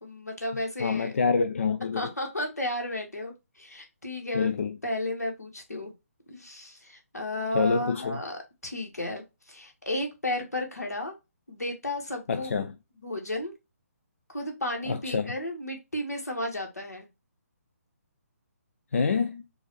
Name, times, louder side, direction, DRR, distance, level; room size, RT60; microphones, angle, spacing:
voice 1, 0.0-1.1 1.9-4.5 4.8-5.9 6.3-11.2 11.5-12.6 13.0-13.5 14.3-17.1, left 1 dB, 80° left, 1.6 m, -33 dB
voice 2, 0.8-2.1 4.3-4.8 7.5-8.2 12.3-12.8 14.9-15.3 18.9-19.4, left 5 dB, 60° left, 0.4 m, -27 dB
4.6 x 2.7 x 3.0 m
figure-of-eight pair, 140°, 8 cm